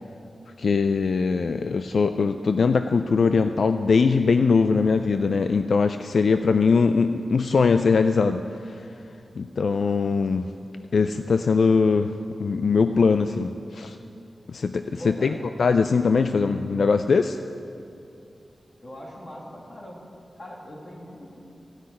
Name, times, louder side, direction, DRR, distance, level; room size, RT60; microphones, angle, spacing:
voice 1, 0.6-8.4 9.4-10.5 10.9-12.1 12.4-14.0 14.5-15.3 15.6-17.4, left 4 dB, 70° left, 8 dB, 0.3 m, -21 dB
voice 2, 15.0-15.4 18.8-20.0 20.4-21.4, equal, 35° left, -3 dB, 2.4 m, -41 dB
15.0 x 5.9 x 9.6 m, 2.5 s
wide cardioid pair, 135°, 0 cm